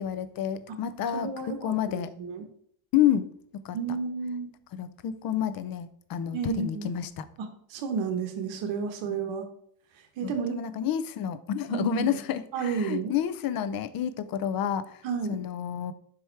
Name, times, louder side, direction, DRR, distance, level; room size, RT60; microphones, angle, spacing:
voice 1, 0.0-2.1 2.9-3.3 3.5-3.8 4.7-7.3 9.0-9.1 10.2-15.0 15.3-15.9, left 10 dB, 50° left, 0.5 m, -29 dB
voice 2, 1.1-1.7 2.2-2.4 3.7-4.5 6.3-6.9 7.4-9.4 10.2-10.6 11.7-12.2 12.5-13.1 15.0-15.4, right 5 dB, 75° right, 1.2 m, -31 dB
5.7 x 4.9 x 4.5 m
cardioid pair, 170°, 46 cm